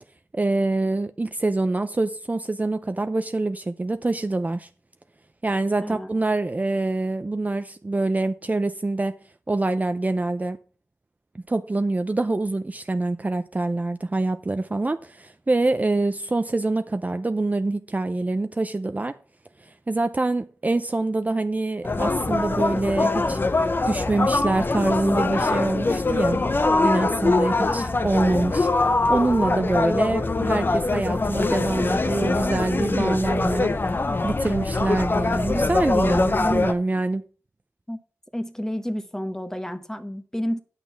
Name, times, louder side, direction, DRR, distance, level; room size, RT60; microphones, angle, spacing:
voice 1, 0.3-4.7 5.4-9.2 9.5-10.6 11.3-19.2 19.6-23.4 23.9-26.4 26.8-33.7 34.2-37.2, right 2 dB, 30° right, 0.5 m, -25 dB
sound 1, 21.8-36.7, left 3 dB, 40° left, 0.8 m, -23 dB
voice 2, 38.3-40.6, equal, 10° left, 1.1 m, -30 dB
9.1 x 6.2 x 5.6 m
wide cardioid pair, 70°, 6 cm